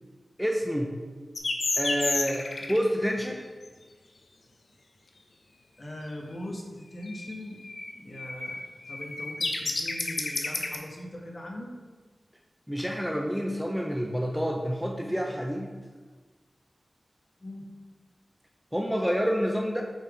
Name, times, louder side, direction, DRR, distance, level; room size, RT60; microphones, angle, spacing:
voice 1, 0.4-0.9 1.8-3.4 12.7-15.7 18.7-19.8, equal, 5° right, 1 dB, 0.6 m, -28 dB
sound 1, 1.4-2.8 7.1-7.3 7.6-10.8, left 3 dB, 75° left, 0.8 m, -30 dB
voice 2, 5.8-7.6 7.9-11.8 17.4-17.7, left 1 dB, 40° left, -1 dB, 1.4 m, -40 dB
6.6 x 4.4 x 4.9 m, 1.4 s
wide cardioid pair, 70°, 0 cm